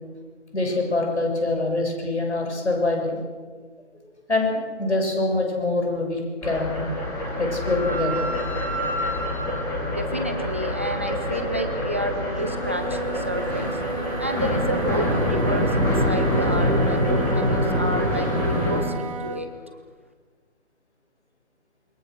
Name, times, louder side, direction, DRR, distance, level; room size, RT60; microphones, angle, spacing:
voice 1, 0.5-3.2 4.3-6.8 7.4-8.3, left 2 dB, 65° left, 2 dB, 7.2 m, -24 dB
sound 1, 6.4-18.8, left 1 dB, 5° left, 2.2 m, -25 dB
voice 2, 9.9-13.7 14.2-19.5, right 1 dB, 10° right, 6 dB, 0.7 m, -30 dB
Wind instrument woodwind instrument, 12.3-19.5, right 4 dB, 25° right, 1.8 m, -34 dB
28.5 x 21.5 x 6.5 m, 1.5 s
figure-of-eight pair, 155°, 37 cm